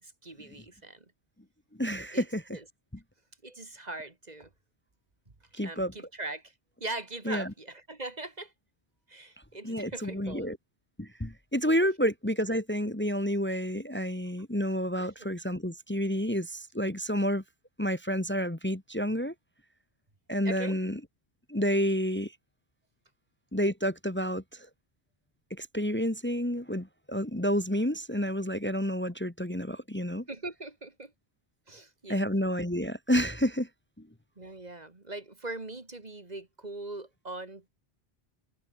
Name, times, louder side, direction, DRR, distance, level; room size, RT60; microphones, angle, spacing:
voice 1, 0.0-1.1 2.1-2.3 2.5-2.6 3.4-4.5 5.5-6.5 6.8-8.5 9.1-10.5 15.0-15.1 20.4-20.8 30.3-31.1 31.7-32.2 34.4-37.7, right 2 dB, 40° right, 2.1 m, -41 dB
voice 2, 1.8-2.4 5.5-5.9 7.3-7.5 9.6-10.6 11.0-17.4 17.8-19.3 20.3-21.0 21.5-22.3 23.5-24.7 25.6-30.2 32.1-33.7, equal, 10° left, 1.5 m, -29 dB
omnidirectional pair, 1.1 m